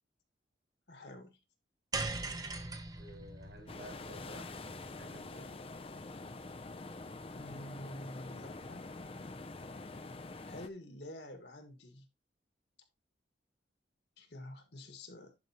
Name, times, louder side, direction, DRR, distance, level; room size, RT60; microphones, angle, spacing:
voice 1, 0.9-1.4 7.4-8.8 10.4-12.1 14.2-15.4, left 1 dB, 65° left, 1.8 m, -48 dB
sound 1, 1.9-6.3, right 3 dB, 20° right, 0.8 m, -42 dB
voice 2, 2.9-5.6 9.5-9.9, equal, 70° right, 4.7 m, -53 dB
sound 2, 3.7-10.7, left 3 dB, 30° left, 0.5 m, -46 dB
10.5 x 5.3 x 3.0 m
head